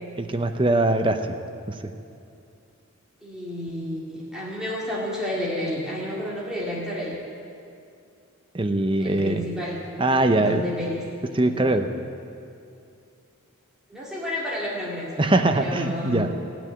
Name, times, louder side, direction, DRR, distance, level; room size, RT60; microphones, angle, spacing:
voice 1, 0.2-1.3 1.7-1.9 8.5-9.4 10.0-10.6 11.3-11.9 15.2-16.3, right 2 dB, 25° right, 6 dB, 0.6 m, -22 dB
voice 2, 3.2-7.2 9.0-11.0 11.3-11.8 13.9-15.1 15.5-16.3, left 1 dB, 5° right, -7 dB, 2.3 m, -31 dB
16.5 x 6.1 x 9.5 m, 2.5 s
head